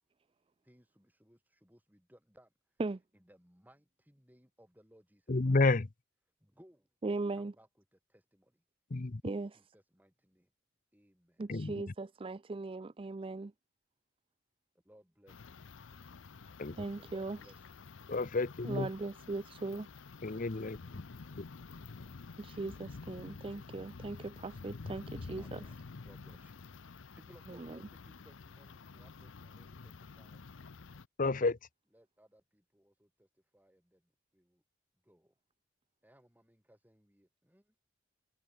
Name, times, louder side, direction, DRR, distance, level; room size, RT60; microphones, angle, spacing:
voice 1, 0.6-2.8 3.2-5.6 6.4-8.6 9.2-10.5 10.9-11.5 14.8-15.7 17.0-17.9 18.8-18.9 19.4-19.5 20.9-21.6 21.9-22.2 25.4-26.7 27.2-30.4 31.9-34.6 35.0-35.3 36.0-37.8, equal, 10° right, 7.4 m, -64 dB
voice 2, 5.3-5.9 8.9-9.2 11.5-11.7 16.6-16.7 18.1-18.9 20.2-21.0 31.2-31.6, left 3 dB, 45° left, 0.7 m, -30 dB
voice 3, 7.0-7.5 9.2-9.7 11.4-13.5 16.7-17.4 18.6-19.9 22.4-25.6 27.5-27.8, right 3 dB, 25° right, 0.4 m, -39 dB
sound 1, 15.3-31.1, left 4 dB, 85° left, 0.7 m, -49 dB
head